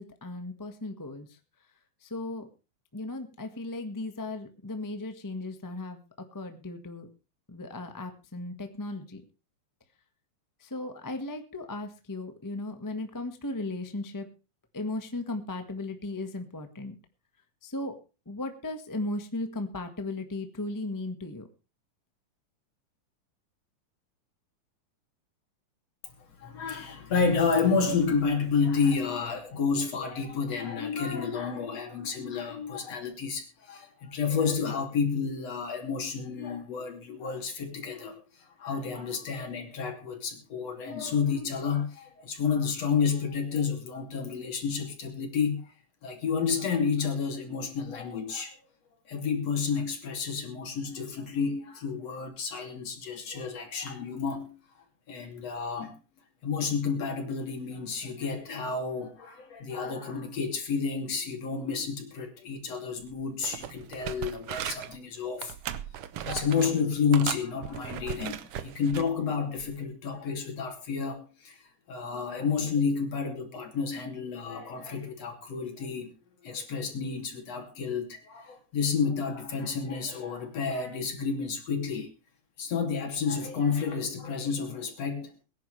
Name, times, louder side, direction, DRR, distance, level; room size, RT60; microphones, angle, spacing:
voice 1, 0.0-1.4 2.0-2.5 2.9-7.1 7.5-9.2 10.6-14.3 14.7-17.0 17.6-18.0 18.2-21.5, left 2 dB, 15° left, 6 dB, 0.6 m, -36 dB
voice 2, 26.4-38.2 38.6-45.7 46.0-48.6 49.1-54.5 55.1-55.9 56.4-65.5 66.2-71.6 71.9-76.1 76.4-82.1 82.6-85.3, left 5 dB, 55° left, 4 dB, 3.8 m, -30 dB
sound 1, 63.0-63.2 63.4-65.0 65.4-66.8 67.1-69.1 69.6-69.8, right 10 dB, 70° right, 1.4 m, -37 dB
23.0 x 10.5 x 3.3 m, 0.31 s
omnidirectional pair, 3.5 m